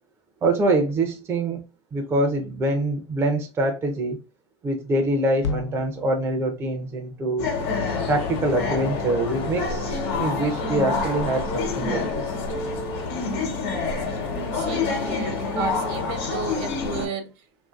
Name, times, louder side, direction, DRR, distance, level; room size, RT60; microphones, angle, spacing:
voice 1, 0.4-1.6 1.9-4.2 4.6-7.5 8.1-12.2 15.6-15.7, right 2 dB, 20° right, 0.4 m, -25 dB
sound 1, 5.4-9.8, left 4 dB, 80° left, 0.4 m, -37 dB
sound 2, 7.4-17.1, left 4 dB, 65° left, 1.0 m, -27 dB
sound 3, 7.6-13.4, left 4 dB, 40° left, 0.7 m, -36 dB
voice 2, 14.5-17.3, right 5 dB, 55° right, 0.7 m, -33 dB
2.6 x 2.6 x 2.3 m
supercardioid pair, 125°, 14 cm